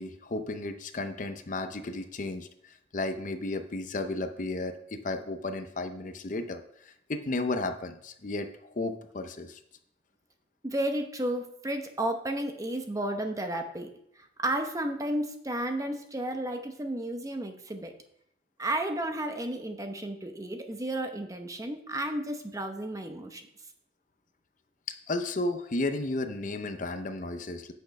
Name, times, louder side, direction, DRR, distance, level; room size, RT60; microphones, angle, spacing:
voice 1, 0.0-2.5 2.9-6.6 7.1-8.5 8.8-9.6 25.1-27.7, left 2 dB, 45° left, 8 dB, 0.7 m, -33 dB
voice 2, 10.6-13.9 14.4-17.9 18.6-23.5, right 1 dB, 20° right, 5 dB, 0.8 m, -32 dB
8.5 x 6.5 x 5.3 m, 0.72 s
head